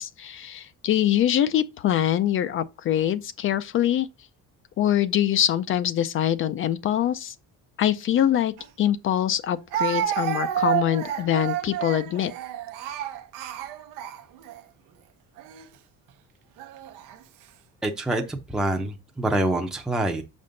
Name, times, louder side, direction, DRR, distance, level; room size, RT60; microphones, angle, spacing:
voice 1, 0.0-4.1 4.8-7.3 7.8-12.3, left 11 dB, 40° left, 0.4 m, -24 dB
Speech, 8.6-8.7 9.7-14.6 15.4-15.6 16.6-17.2, right 11 dB, 80° right, 0.8 m, -30 dB
voice 2, 17.8-20.2, right 1 dB, ahead, 0.6 m, -26 dB
6.5 x 5.2 x 3.9 m
cardioid pair, 165°, 32 cm